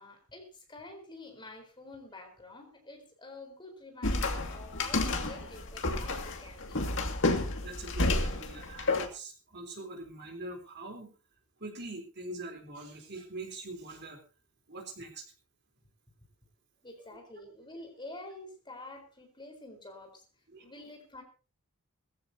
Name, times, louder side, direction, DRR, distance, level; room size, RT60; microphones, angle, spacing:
voice 1, 0.0-6.8 16.8-20.2 20.6-21.2, left 2 dB, 20° left, 3 dB, 4.3 m, -48 dB
sound 1, 4.0-9.1, left 2 dB, 60° left, 2.2 m, -30 dB
voice 2, 7.6-11.1 11.6-14.2 14.7-15.3 17.0-17.1 20.5-20.7, right 2 dB, 50° right, 4 dB, 3.7 m, -43 dB
21.0 x 15.0 x 2.8 m, 0.34 s
head